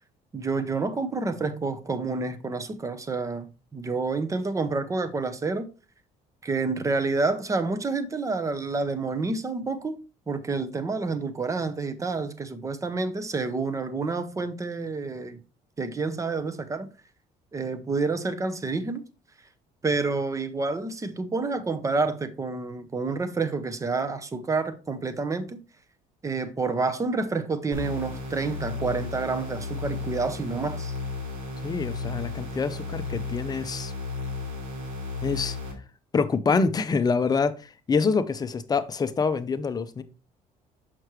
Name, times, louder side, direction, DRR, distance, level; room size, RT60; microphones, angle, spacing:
voice 1, 0.3-5.7 6.4-10.0 10.3-15.4 15.8-16.9 17.5-19.0 19.8-25.6 26.2-30.9, right 3 dB, 20° right, 0.7 m, -28 dB
sound 1, 27.7-35.7, left 3 dB, 80° right, 3.8 m, -34 dB
voice 2, 31.6-33.9 35.2-35.6 36.1-40.0, left 4 dB, 25° left, 0.6 m, -26 dB
6.2 x 5.9 x 3.1 m
cardioid pair, 115°, 15 cm